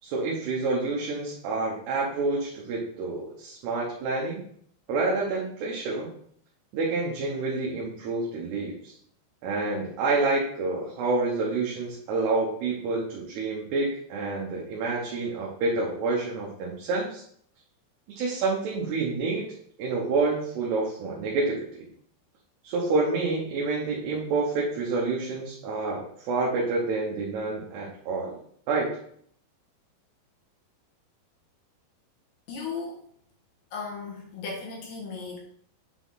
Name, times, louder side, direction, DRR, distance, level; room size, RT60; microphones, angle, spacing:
voice 1, 0.0-4.4 4.9-6.1 6.7-8.9 9.4-17.2 18.2-19.5 19.8-21.6 22.6-28.4 28.7-28.9, right 3 dB, 75° right, -4 dB, 3.0 m, -28 dB
voice 2, 32.5-33.0 33.7-35.4, left 4 dB, 65° left, -2 dB, 3.5 m, -36 dB
8.2 x 4.1 x 4.0 m, 0.64 s
omnidirectional pair, 5.1 m